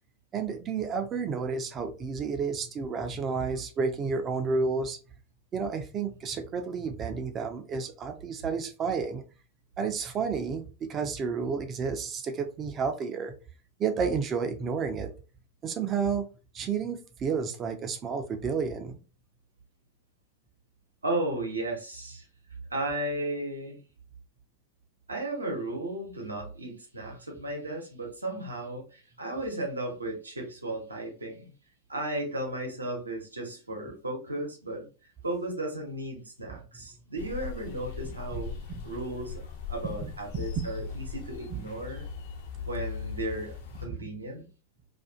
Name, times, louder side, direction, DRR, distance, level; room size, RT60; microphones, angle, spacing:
voice 1, 0.3-5.0 5.5-9.2 9.8-13.3 13.8-15.1 15.6-16.2 16.5-19.0 38.3-38.4 38.7-38.9 39.8-39.9 40.3-40.9 41.5-41.7 43.9-44.1, right 5 dB, 25° right, 0.5 m, -31 dB
voice 2, 21.0-22.2 22.7-23.8 25.1-31.5 31.9-34.9 35.2-38.5 38.8-42.1 42.7-44.5, right 1 dB, 80° right, 0.8 m, -35 dB
sound 1, 37.2-43.8, left 6 dB, 55° left, 0.8 m, -39 dB
2.5 x 2.4 x 2.3 m
figure-of-eight pair, 90°, 0 cm